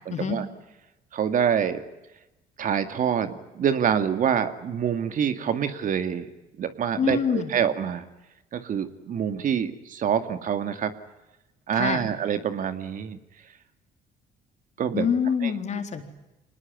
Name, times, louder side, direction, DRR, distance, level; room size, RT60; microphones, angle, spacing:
voice 1, 0.1-0.5 1.1-1.8 2.6-6.3 6.6-8.0 8.5-10.9 11.7-13.2 14.8-15.1 15.4-15.5, right 8 dB, 55° right, 9 dB, 2.3 m, -26 dB
voice 2, 7.0-7.5 11.7-12.0 14.9-16.0, left 7 dB, 45° left, 6 dB, 3.9 m, -25 dB
25.0 x 20.0 x 9.7 m, 0.98 s
cardioid pair, 110°, 17 cm